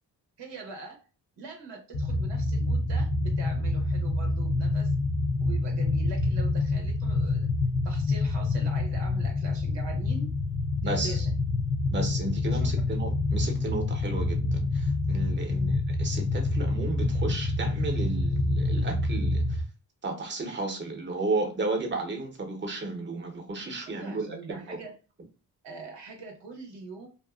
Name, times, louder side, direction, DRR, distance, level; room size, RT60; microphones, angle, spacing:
voice 1, 0.4-1.0 1.4-4.9 5.4-7.5 7.8-10.3 10.8-11.2 12.5-12.7 15.5-15.8 23.9-25.0 25.6-27.1, right 4 dB, 80° right, 0.9 m, -42 dB
sound 1, 1.9-19.6, left 2 dB, 35° left, 0.5 m, -27 dB
voice 2, 10.8-11.2 11.9-19.4 20.0-24.6, right 3 dB, 25° right, 0.8 m, -33 dB
2.5 x 2.3 x 2.3 m
cardioid pair, 50°, 43 cm